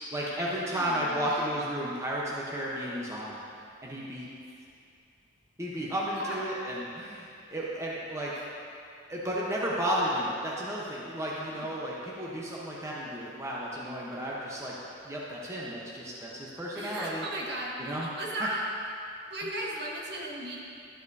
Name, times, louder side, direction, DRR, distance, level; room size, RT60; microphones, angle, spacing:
voice 1, 0.1-3.4 3.8-4.3 5.6-8.4 9.1-14.7 15.0-17.2 17.8-18.1 18.4-18.5, equal, 15° right, -6 dB, 0.9 m, -33 dB
voice 2, 0.7-1.4 6.1-6.4 11.6-11.7 16.7-18.6 19.2-20.6, right 1 dB, 55° right, -3 dB, 1.2 m, -36 dB
12.5 x 7.9 x 2.7 m, 2.4 s
head